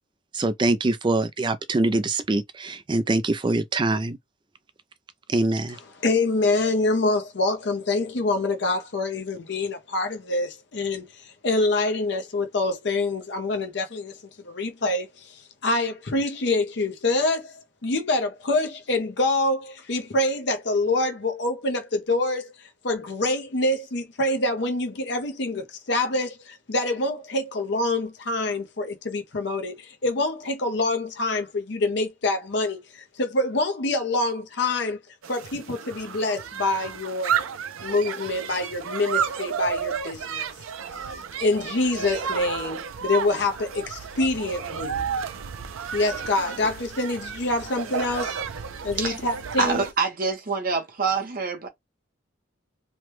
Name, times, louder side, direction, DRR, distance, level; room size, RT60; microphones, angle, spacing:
voice 1, 0.3-4.2 5.3-5.8, right 2 dB, 25° right, 0.3 m, -24 dB
voice 2, 6.0-14.2 14.4-35.0 35.3-37.4 37.8-40.5 41.4-45.0 45.9-48.4 48.8-49.8, left 2 dB, 55° left, 0.6 m, -26 dB
sound 1, 35.2-49.9, right 7 dB, 85° right, 0.5 m, -32 dB
voice 3, 49.6-51.7, right 5 dB, 45° right, 0.8 m, -26 dB
3.0 x 2.2 x 3.1 m
head